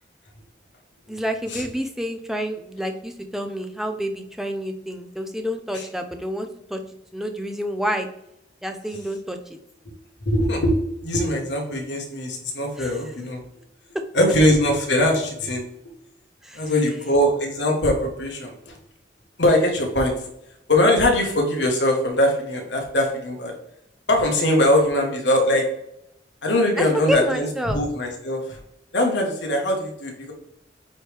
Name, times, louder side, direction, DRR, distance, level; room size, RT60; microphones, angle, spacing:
voice 1, 1.1-6.8 7.1-8.1 8.6-9.4 12.8-12.9 16.4-16.7 26.8-27.8, equal, ahead, 5 dB, 0.5 m, -28 dB
voice 2, 10.2-10.7 11.0-13.4 14.1-15.7 16.5-18.7 19.4-20.1 20.7-23.5 24.1-25.6 26.4-28.6 28.9-30.3, left 1 dB, 70° left, 1 dB, 1.4 m, -21 dB
8.7 x 3.2 x 3.4 m, 0.81 s
head